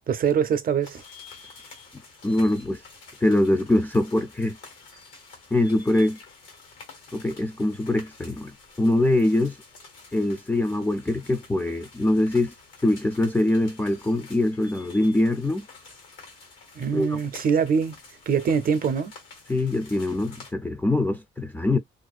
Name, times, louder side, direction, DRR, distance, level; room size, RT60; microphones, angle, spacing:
voice 1, 0.1-1.0 16.8-17.9 18.3-19.1, right 6 dB, 45° right, 0.5 m, -23 dB
sound 1, 0.8-20.5, left 4 dB, 85° left, 1.3 m, -49 dB
voice 2, 2.2-2.8 3.2-4.6 5.5-6.2 7.1-8.5 8.8-9.6 10.1-12.5 12.8-15.7 16.9-17.2 19.5-21.8, left 1 dB, 10° left, 0.3 m, -23 dB
2.5 x 2.2 x 2.4 m
cardioid pair, 90°, 20 cm